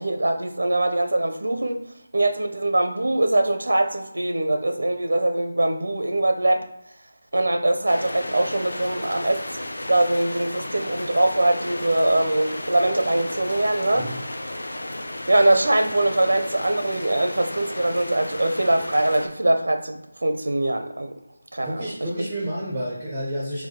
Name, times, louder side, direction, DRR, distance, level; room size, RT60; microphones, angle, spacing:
voice 1, 0.0-1.8 2.1-6.7 7.3-9.4 9.9-14.1 15.3-21.1 21.5-21.8 22.2-22.3, right 1 dB, 80° right, 6 dB, 0.5 m, -22 dB
sound 1, 7.9-19.3, left 1 dB, 80° left, 0.7 m, -34 dB
voice 2, 21.6-23.7, equal, 5° right, -5 dB, 0.4 m, -30 dB
4.8 x 2.2 x 3.6 m, 0.83 s
figure-of-eight pair, 180°, 0 cm